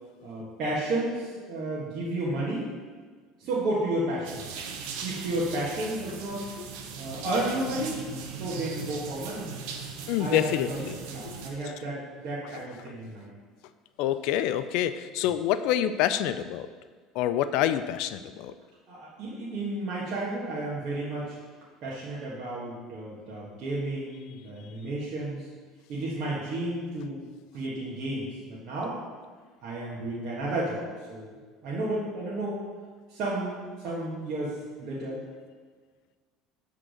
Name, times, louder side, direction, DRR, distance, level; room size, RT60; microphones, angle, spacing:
voice 1, 0.2-2.7 3.4-4.5 5.0-6.5 7.0-8.0 8.3-9.5 10.2-10.8 11.0-13.3 18.9-21.4 21.8-25.5 25.9-27.2 27.5-29.0 29.6-31.3 31.6-32.6 33.1-35.3, right 1 dB, 60° right, -6 dB, 1.5 m, -32 dB
sound 1, 4.2-11.5, right 6 dB, 75° right, 0.8 m, -39 dB
voice 2, 10.1-11.0 11.2-11.4 14.0-16.7 17.1-18.5, left 11 dB, 70° left, 11 dB, 0.4 m, -27 dB
6.8 x 3.7 x 6.3 m, 1.5 s
supercardioid pair, 115°, 0 cm